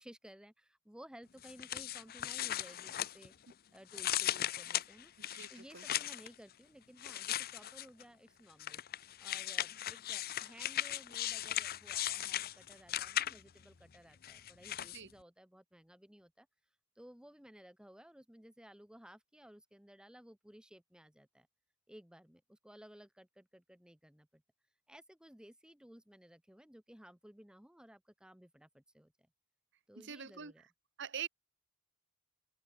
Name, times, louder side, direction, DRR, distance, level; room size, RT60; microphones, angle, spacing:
voice 1, 0.0-3.3 3.7-5.1 5.5-8.8 9.2-16.5 17.0-21.5 21.9-24.4 24.9-29.1 29.9-30.6, equal, 5° right, 1.2 m, -57 dB
sound 1, 1.4-3.5 3.9-6.3 7.0-8.0 8.6-13.6 14.2-15.0, left 12 dB, 45° left, 0.6 m, -38 dB
voice 2, 5.2-5.9 14.9-15.1 30.0-30.5 31.0-31.3, right 8 dB, 60° right, 1.9 m, -44 dB
head